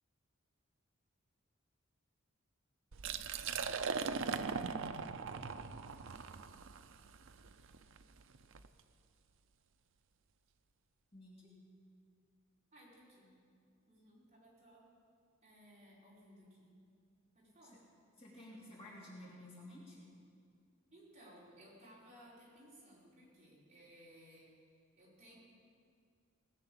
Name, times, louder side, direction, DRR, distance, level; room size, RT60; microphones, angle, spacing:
Liquid, 2.9-8.7, right 5 dB, 65° right, 0.6 m, -40 dB
voice 1, 11.1-11.5 18.2-20.1, left 1 dB, 30° left, -6 dB, 2.8 m, -53 dB
voice 2, 12.7-13.3 13.9-14.8 15.4-16.7 17.3-17.8 18.8-19.1 20.9-25.4, equal, 35° right, -7 dB, 5.0 m, -60 dB
19.5 x 6.9 x 8.6 m, 2.3 s
head